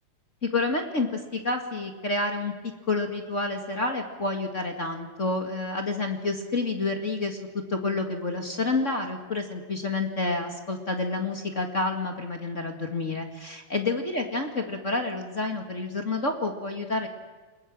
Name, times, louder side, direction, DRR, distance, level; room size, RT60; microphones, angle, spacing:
voice 1, 0.4-2.5 2.9-7.4 7.7-17.1, left 3 dB, 30° left, 4 dB, 1.5 m, -29 dB
29.0 x 21.0 x 6.2 m, 1.4 s
omnidirectional pair, 4.3 m